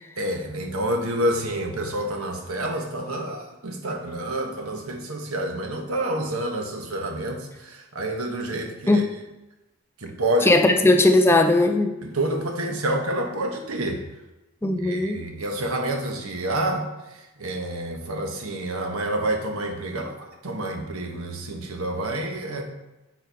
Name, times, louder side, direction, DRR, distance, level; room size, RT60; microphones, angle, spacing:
voice 1, 0.2-9.1 10.0-10.5 12.0-14.0 14.7-20.2 20.4-22.6, right 1 dB, 90° right, 3 dB, 1.2 m, -28 dB
voice 2, 10.5-11.9 14.6-15.2, left 2 dB, 10° left, 5 dB, 0.4 m, -18 dB
8.5 x 4.5 x 3.5 m, 1.0 s
head